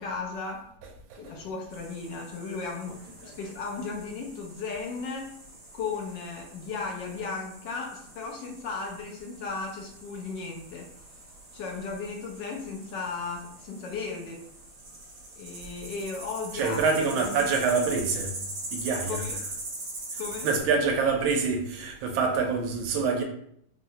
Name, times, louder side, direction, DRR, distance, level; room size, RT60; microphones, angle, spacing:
voice 1, 0.0-0.7 1.2-3.0 3.2-5.3 5.7-10.9 11.5-14.4 15.4-16.8 17.2-17.4 19.1-19.4 20.2-20.5, left 4 dB, 70° left, 1.2 m, -35 dB
voice 2, 0.8-1.3 16.5-18.3 18.7-19.3 20.1-23.2, right 4 dB, 85° right, 1.4 m, -26 dB
sound 1, 1.7-20.6, right 2 dB, 55° right, 1.0 m, -42 dB
3.7 x 2.1 x 2.7 m
omnidirectional pair, 2.1 m